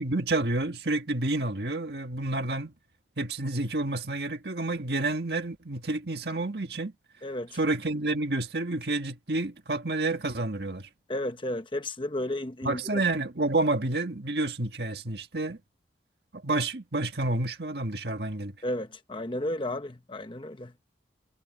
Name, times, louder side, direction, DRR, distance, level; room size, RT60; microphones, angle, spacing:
voice 1, 0.0-2.7 3.2-6.9 7.5-10.9 12.6-15.6 16.3-18.5, right 2 dB, 60° right, 1.8 m, -29 dB
voice 2, 7.2-7.6 11.1-13.0 18.6-20.7, left 1 dB, 25° left, 1.0 m, -33 dB
head